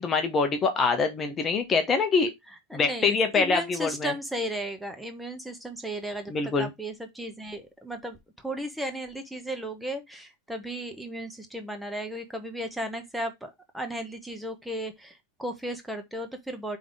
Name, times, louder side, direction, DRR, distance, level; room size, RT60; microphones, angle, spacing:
voice 1, 0.0-2.3 2.7-4.1 6.3-6.7, left 4 dB, 20° left, 1.1 m, -24 dB
voice 2, 2.5-16.8, right 1 dB, 5° right, 1.1 m, -35 dB
5.3 x 3.7 x 5.0 m
figure-of-eight pair, 90°, 0 cm